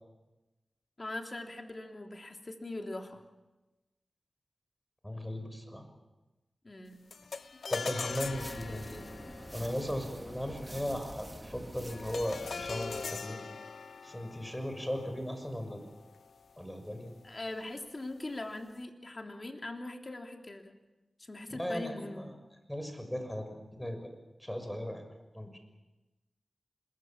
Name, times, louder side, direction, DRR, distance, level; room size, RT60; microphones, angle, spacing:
voice 1, 1.0-3.2 6.6-7.0 17.2-20.8 21.2-22.3, left 2 dB, 40° left, 3 dB, 3.2 m, -41 dB
voice 2, 5.0-5.8 7.7-9.0 9.5-13.4 14.0-15.8 16.6-17.1 21.5-22.3 22.7-24.1 24.4-25.0 25.3-25.6, equal, 10° left, 6 dB, 6.3 m, -37 dB
sound 1, 7.1-16.6, left 5 dB, 85° left, 0.7 m, -42 dB
sound 2, 8.0-13.3, right 1 dB, 15° right, 2.2 m, -47 dB
26.5 x 21.5 x 7.4 m, 1.1 s
cardioid pair, 60°, 0 cm